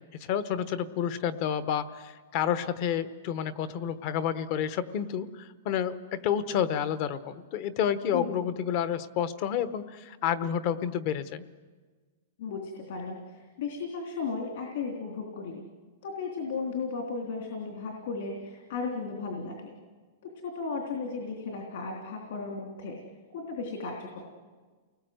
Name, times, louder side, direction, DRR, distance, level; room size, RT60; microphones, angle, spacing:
voice 1, 0.1-11.4, left 9 dB, 30° left, 13 dB, 1.0 m, -30 dB
voice 2, 8.1-8.4 12.4-15.6 16.0-19.7 20.4-23.0 23.3-24.2, left 4 dB, 50° left, 2 dB, 3.4 m, -35 dB
29.5 x 20.0 x 7.9 m, 1.4 s
supercardioid pair, 180°, 0 cm